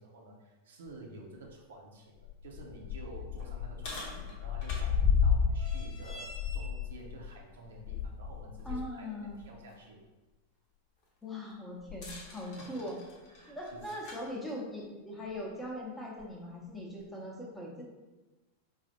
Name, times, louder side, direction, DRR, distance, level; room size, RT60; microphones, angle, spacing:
voice 1, 0.0-10.0 12.4-12.7 13.3-13.8, right 2 dB, 60° right, -1 dB, 0.6 m, -50 dB
sound 1, 1.5-1.6 2.1-8.9 9.3-9.4 11.9-14.3 15.3-15.4 16.2-16.3, left 6 dB, 45° left, 0.8 m, -33 dB
voice 2, 8.6-9.4 11.2-13.0 13.5-17.8, left 1 dB, 10° left, -2 dB, 0.7 m, -40 dB
4.7 x 2.0 x 2.9 m, 1.1 s
figure-of-eight pair, 90°, 0 cm